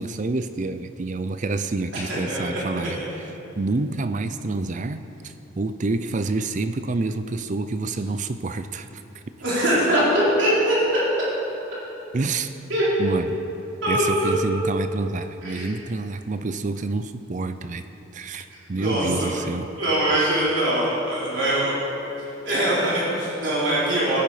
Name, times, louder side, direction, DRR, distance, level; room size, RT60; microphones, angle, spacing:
voice 1, 0.0-3.3 3.6-9.0 12.1-12.5 13.0-13.4 13.9-17.9 18.1-19.7, right 3 dB, 40° right, 10 dB, 0.5 m, -28 dB
voice 2, 2.1-2.5 9.4-11.0 12.7-12.8 13.8-14.3 15.4-15.7 18.8-19.3 19.8-21.7 22.4-24.2, right 1 dB, 65° right, -8 dB, 4.1 m, -22 dB
20.0 x 10.5 x 4.9 m, 2.9 s
head